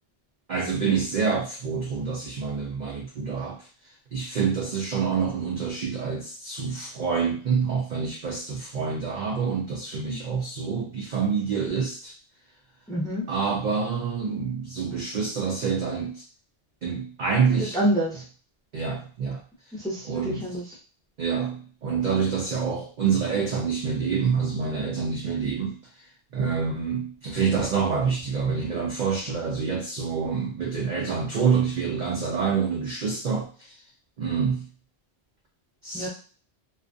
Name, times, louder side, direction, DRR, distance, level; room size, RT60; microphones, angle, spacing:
voice 1, 0.5-3.6 4.1-12.1 13.3-16.2 16.8-17.8 18.7-19.4 20.0-20.5 21.2-25.8 26.3-33.7 34.2-34.6 35.8-36.1, right 6 dB, 60° right, -1 dB, 0.5 m, -27 dB
voice 2, 12.9-13.2 17.6-18.2 19.7-20.6 35.9-36.1, right 1 dB, 5° left, -6 dB, 0.5 m, -27 dB
2.4 x 2.2 x 2.5 m, 0.39 s
omnidirectional pair, 1.2 m